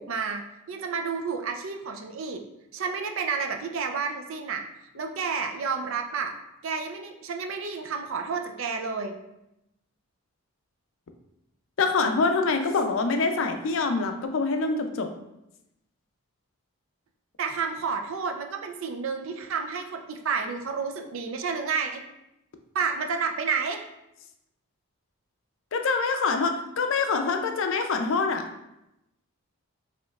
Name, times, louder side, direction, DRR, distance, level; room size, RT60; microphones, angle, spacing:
voice 1, 0.0-2.4 2.7-4.6 4.9-6.3 6.6-9.2 17.4-22.0 22.7-23.8, right 5 dB, 60° right, 5 dB, 0.4 m, -30 dB
voice 2, 11.8-15.1 25.7-28.5, left 4 dB, 60° left, 6 dB, 0.4 m, -25 dB
5.2 x 2.9 x 2.3 m, 0.88 s
head